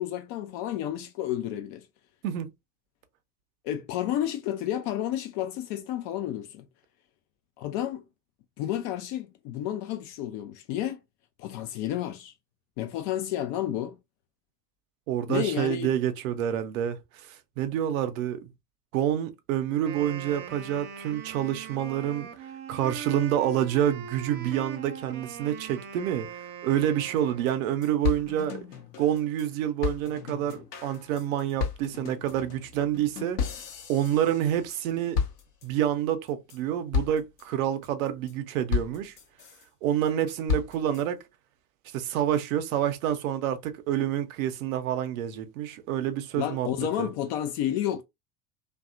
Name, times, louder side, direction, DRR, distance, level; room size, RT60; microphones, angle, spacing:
voice 1, 0.0-1.8 3.6-6.6 7.6-8.0 8.6-11.0 11.4-12.3 12.8-14.0 15.3-15.9 46.3-48.0, left 11 dB, 40° left, 0.4 m, -31 dB
voice 2, 15.1-18.5 18.9-22.3 22.7-26.3 26.6-28.7 29.0-33.4 33.9-35.2 35.6-39.1 39.8-41.2 41.9-46.7 47.0-47.1, right 10 dB, 60° right, 0.7 m, -28 dB
Wind instrument woodwind instrument, 19.7-27.8, right 7 dB, 25° right, 0.4 m, -41 dB
sound 1, 27.2-27.3 27.5-27.6 27.8-29.5 29.8-34.8 35.1-35.9 36.3-36.6 36.9-37.4 37.8-38.3 38.7-39.6 40.1-41.0, left 6 dB, 70° left, 0.8 m, -33 dB
2.7 x 2.3 x 2.4 m
figure-of-eight pair, 65°, 48 cm